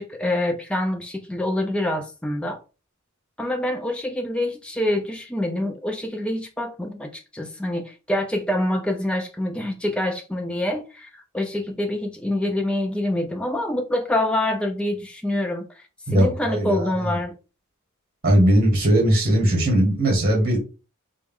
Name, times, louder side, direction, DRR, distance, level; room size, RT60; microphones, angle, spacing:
voice 1, 0.0-2.6 3.4-15.8 16.1-17.3, left 1 dB, 5° left, 0.5 m, -26 dB
voice 2, 16.1-17.2 18.2-20.6, right 1 dB, 45° right, 1.5 m, -19 dB
4.5 x 2.0 x 3.5 m
head